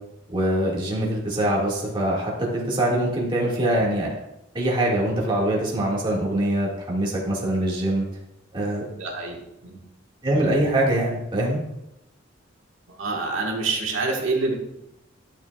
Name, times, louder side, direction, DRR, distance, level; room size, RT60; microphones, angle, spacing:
voice 1, 0.3-4.1 4.5-8.0 8.5-8.8 10.2-11.6, right 1 dB, 25° right, -4 dB, 1.9 m, -23 dB
voice 2, 9.0-9.8 12.9-14.6, right 3 dB, 90° right, -1 dB, 1.6 m, -27 dB
12.0 x 7.2 x 2.4 m, 0.87 s
head